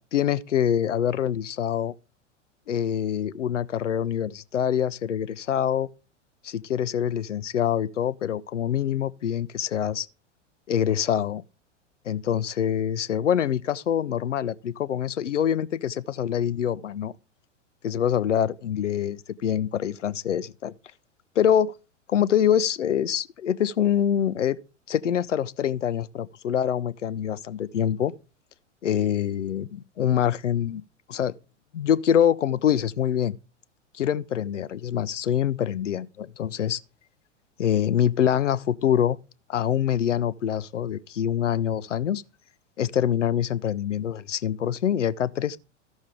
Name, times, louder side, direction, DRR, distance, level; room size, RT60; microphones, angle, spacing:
voice 1, 0.0-1.9 2.7-5.9 6.4-10.1 10.7-11.4 12.1-17.1 17.8-20.7 21.4-21.7 22.1-24.6 24.9-28.1 28.8-30.8 31.1-31.3 31.7-33.4 33.9-36.8 37.6-39.2 39.5-42.2 42.8-45.6, left 9 dB, 75° left, 0.6 m, -25 dB
14.0 x 6.3 x 3.6 m
figure-of-eight pair, 95°, 37 cm